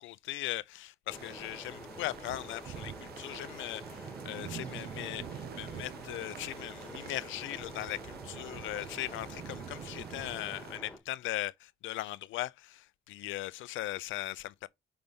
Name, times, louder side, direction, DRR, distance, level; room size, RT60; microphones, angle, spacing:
voice 1, 0.0-14.7, left 16 dB, 80° left, 0.4 m, -39 dB
sound 1, 1.1-11.0, left 1 dB, 5° left, 1.9 m, -48 dB
sound 2, 1.1-10.8, right 10 dB, 55° right, 0.5 m, -46 dB
5.3 x 3.4 x 5.3 m
cardioid pair, 90°, 20 cm